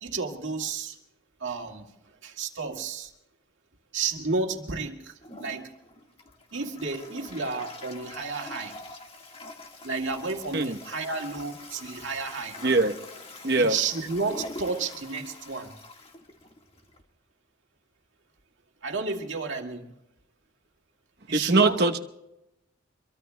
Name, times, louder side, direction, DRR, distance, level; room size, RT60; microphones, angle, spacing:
voice 1, 0.0-0.9 1.4-1.8 2.2-3.1 3.9-5.1 5.4-5.7 6.5-8.7 9.8-12.5 13.6-15.7 18.8-19.9 21.3-21.8, right 4 dB, 75° right, 2 dB, 2.0 m, -31 dB
Toilet flush, 5.2-17.0, left 2 dB, 30° left, 1.6 m, -44 dB
voice 2, 12.6-12.9 13.4-13.8 21.3-22.0, right 3 dB, 55° right, 5 dB, 1.0 m, -22 dB
26.0 x 23.0 x 2.2 m, 0.88 s
head